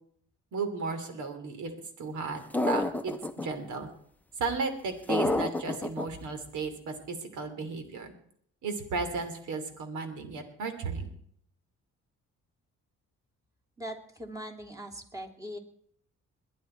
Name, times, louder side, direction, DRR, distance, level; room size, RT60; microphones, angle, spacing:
voice 1, 0.5-1.7 2.0-3.9 4.4-8.1 8.6-11.1, right 4 dB, 75° right, 8 dB, 3.1 m, -35 dB
sound 1, 2.5-3.5 5.1-6.1, left 2 dB, 5° left, 0.8 m, -28 dB
voice 2, 13.8-15.6, equal, 10° right, 4 dB, 3.1 m, -41 dB
21.5 x 10.5 x 4.5 m, 0.65 s
cardioid pair, 90°, 30 cm